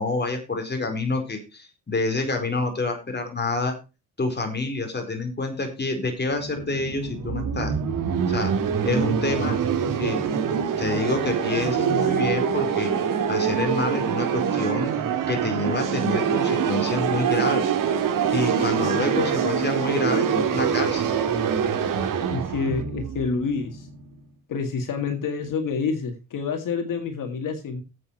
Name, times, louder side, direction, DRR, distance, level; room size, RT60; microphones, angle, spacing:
voice 1, 0.0-3.7 4.2-7.7 8.3-8.5 8.8-9.6 10.0-10.2 10.8-12.9 13.3-14.9 15.3-17.6 18.3-21.0, left 3 dB, 35° left, 4 dB, 4.5 m, -27 dB
sound 1, 6.2-24.1, right 7 dB, 85° right, 2.1 m, -25 dB
voice 2, 22.3-23.9 24.5-27.8, left 5 dB, 80° left, 5 dB, 2.0 m, -28 dB
9.5 x 8.2 x 5.5 m, 0.30 s
cardioid pair, 85°, 32 cm